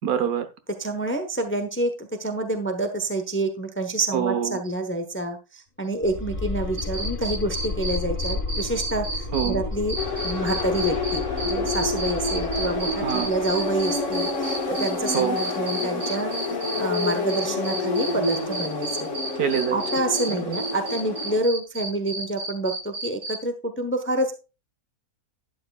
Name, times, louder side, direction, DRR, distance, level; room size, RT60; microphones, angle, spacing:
voice 1, 0.0-0.5 4.1-4.6 9.3-9.6 13.0-13.3 15.1-15.4 19.4-19.8 20.4-20.6, right 9 dB, 70° right, 9 dB, 1.4 m, -25 dB
voice 2, 0.8-9.1 9.4-10.0 10.2-16.3 16.8-19.1 19.7-24.3, right 2 dB, 10° left, 6 dB, 0.7 m, -27 dB
sound 1, 6.0-14.9, left 4 dB, 35° left, 1.4 m, -33 dB
sound 2, 6.7-9.5 9.9-23.3, right 2 dB, 35° right, 4.4 m, -32 dB
sound 3, 10.0-21.4, left 3 dB, 50° left, 2.0 m, -28 dB
11.5 x 9.1 x 2.3 m, 0.30 s
omnidirectional pair, 1.7 m